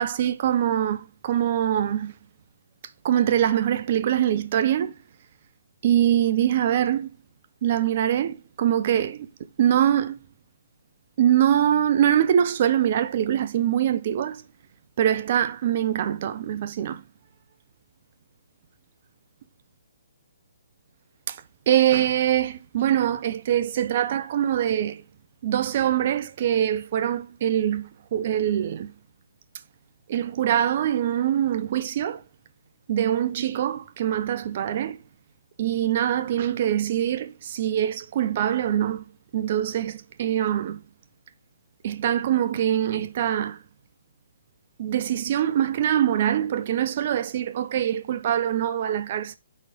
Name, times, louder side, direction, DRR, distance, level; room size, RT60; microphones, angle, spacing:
voice 1, 0.0-2.1 3.0-4.9 5.8-7.1 7.6-9.3 9.6-10.2 11.2-14.4 15.0-17.0 21.3-21.4 21.7-25.0 25.4-28.9 30.1-32.2 32.9-35.0 35.6-39.0 39.3-40.8 41.8-43.6 44.8-49.4, right 10 dB, 45° right, 0.6 m, -23 dB
4.8 x 4.2 x 5.3 m
hypercardioid pair, 140°, 0 cm